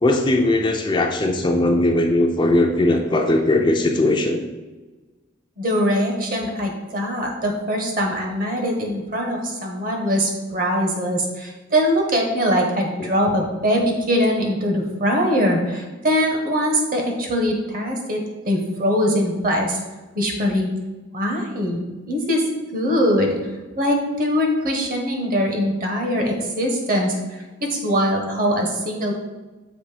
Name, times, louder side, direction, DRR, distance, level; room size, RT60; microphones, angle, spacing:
voice 1, 0.0-4.4 13.0-13.1, left 1 dB, 25° left, 2 dB, 0.5 m, -19 dB
voice 2, 5.6-18.2 18.4-19.8 20.1-20.7 21.1-21.8 22.1-22.4 22.7-23.3 23.8-27.1 27.7-29.1, equal, 45° right, 1 dB, 1.1 m, -22 dB
6.6 x 3.1 x 4.9 m, 1.2 s
head